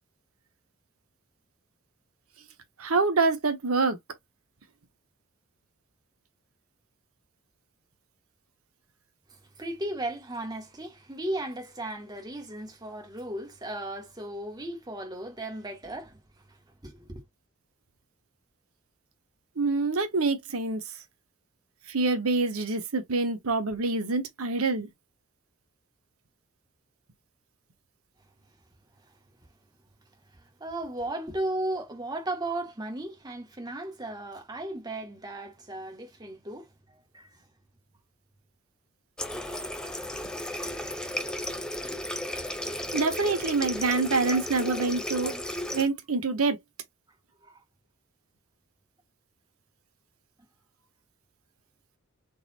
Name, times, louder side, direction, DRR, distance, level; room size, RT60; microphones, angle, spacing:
voice 1, 2.8-4.0 19.6-20.8 21.9-24.9 42.9-45.3 45.7-46.6, right 3 dB, 75° right, 1.0 m, -26 dB
voice 2, 9.6-16.2 16.5-16.6 16.8-17.2 30.3-37.3 44.3-44.8 45.2-45.4 47.4-47.6, right 1 dB, 20° right, 1.3 m, -36 dB
Water tap faucet, 39.2-45.9, left 1 dB, 5° left, 0.6 m, -34 dB
4.0 x 2.4 x 4.2 m
head